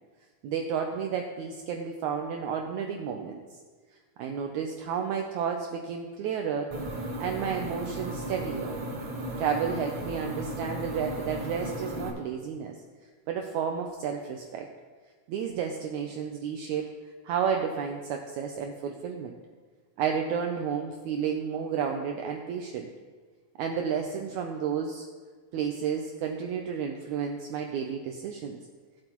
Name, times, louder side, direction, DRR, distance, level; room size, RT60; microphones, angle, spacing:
voice 1, 0.4-3.6 4.2-6.7 7.2-8.8 9.4-12.7 13.3-14.7 15.3-16.9 17.2-19.3 20.0-22.9 23.6-25.0 25.5-28.6, right 7 dB, 85° right, 3 dB, 1.6 m, -31 dB
sound 1, 6.7-12.1, right 1 dB, 70° right, 1.1 m, -35 dB
18.0 x 7.7 x 3.0 m, 1.5 s
omnidirectional pair, 4.2 m